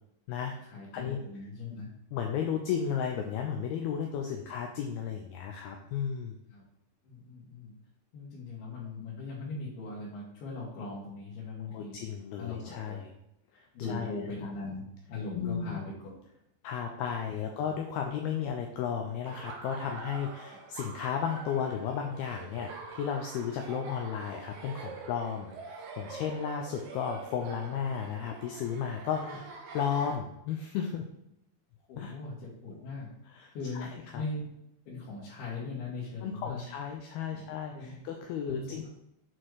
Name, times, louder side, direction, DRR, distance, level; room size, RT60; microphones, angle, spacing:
voice 1, 0.6-1.9 6.5-6.6 7.0-7.7 8.1-11.9 12.4-13.0 13.7-15.9 17.3-17.4 31.9-33.1 33.5-34.5 34.9-36.6 37.3-37.9 38.5-38.9, left 3 dB, 65° left, -8 dB, 3.3 m, -40 dB
voice 2, 2.1-6.4 11.7-13.1 13.5-14.1 14.4-14.5 15.3-15.8 16.6-29.5 29.7-31.1 32.0-32.1 33.3-33.5 33.8-34.2 36.2-38.9, left 7 dB, 90° left, 3 dB, 2.2 m, -34 dB
Laughter, 19.3-30.2, right 4 dB, 80° right, 1.7 m, -45 dB
7.9 x 4.3 x 4.7 m, 0.81 s
omnidirectional pair, 5.1 m